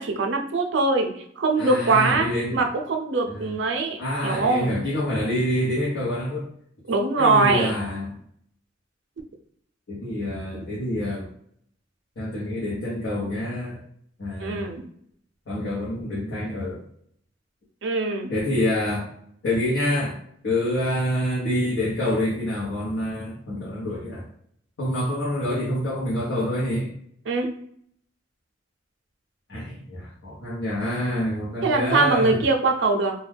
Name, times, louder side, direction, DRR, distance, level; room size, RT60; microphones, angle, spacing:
voice 1, 0.0-4.7 6.9-7.7 14.4-14.8 17.8-18.3 27.3-27.5 31.6-33.1, right 3 dB, 75° right, 3 dB, 0.5 m, -22 dB
voice 2, 1.6-2.6 3.3-3.6 4.0-6.5 7.2-8.1 9.9-11.3 12.2-13.8 14.2-14.7 15.5-16.8 18.3-19.1 19.4-20.2 20.4-24.2 24.8-26.9 29.5-32.4, left 1 dB, 90° left, -8 dB, 0.8 m, -27 dB
2.2 x 2.2 x 3.3 m, 0.67 s
head